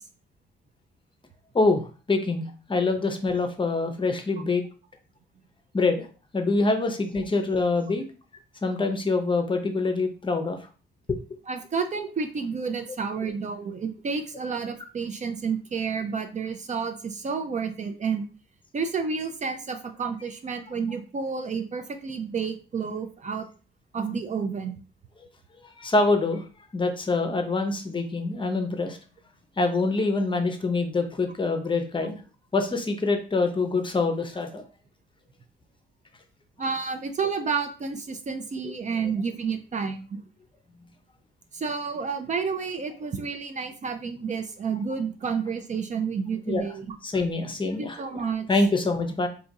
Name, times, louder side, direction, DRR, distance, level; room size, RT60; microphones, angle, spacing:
voice 1, 1.5-4.6 5.7-6.1 6.3-8.0 8.6-10.6 11.1-11.2 25.6-26.5 26.7-29.0 29.6-32.2 32.5-34.6 38.6-38.7 46.5-46.7 47.0-49.3, left 3 dB, 25° left, 6 dB, 0.7 m, -25 dB
voice 2, 11.5-18.2 18.7-23.5 23.9-24.8 36.6-40.2 41.5-46.9 47.6-48.5, right 5 dB, 35° right, 6 dB, 0.5 m, -30 dB
2.7 x 2.4 x 4.1 m, 0.36 s
cardioid pair, 90°, 20 cm